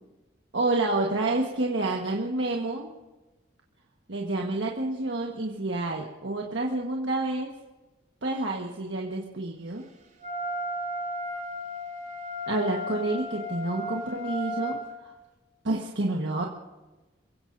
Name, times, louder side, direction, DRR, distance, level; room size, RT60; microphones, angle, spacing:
voice 1, 0.5-2.9 4.1-7.5 8.2-9.8 12.5-15.1 15.6-16.5, right 2 dB, 80° right, -1 dB, 1.4 m, -29 dB
Wind instrument woodwind instrument, 10.2-14.8, left 1 dB, 40° right, 5.1 m, -34 dB
28.5 x 16.5 x 2.7 m, 1.1 s
head